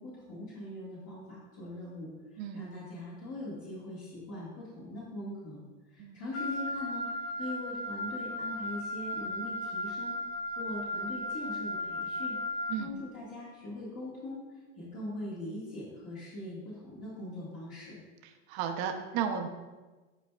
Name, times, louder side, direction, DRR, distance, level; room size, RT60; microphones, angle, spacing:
voice 1, 0.0-5.6 5.9-10.2 10.5-18.0, left 1 dB, 40° left, -8 dB, 1.7 m, -41 dB
Wind instrument woodwind instrument, 6.3-12.8, left 1 dB, 65° left, 1.6 m, -36 dB
voice 2, 18.5-19.5, right 8 dB, 50° right, 5 dB, 0.7 m, -33 dB
9.1 x 4.5 x 2.3 m, 1.2 s
supercardioid pair, 125°, 37 cm